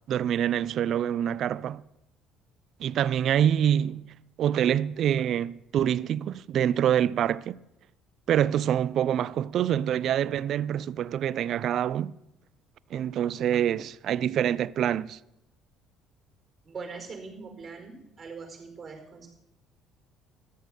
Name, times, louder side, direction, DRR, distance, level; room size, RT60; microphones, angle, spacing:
voice 1, 0.1-1.8 2.8-4.1 4.4-7.6 8.3-12.1 12.9-15.2, right 10 dB, 60° right, 0.5 m, -26 dB
voice 2, 16.6-19.3, right 4 dB, 35° right, 4.7 m, -42 dB
14.0 x 11.5 x 6.8 m
hypercardioid pair, 60°, 0 cm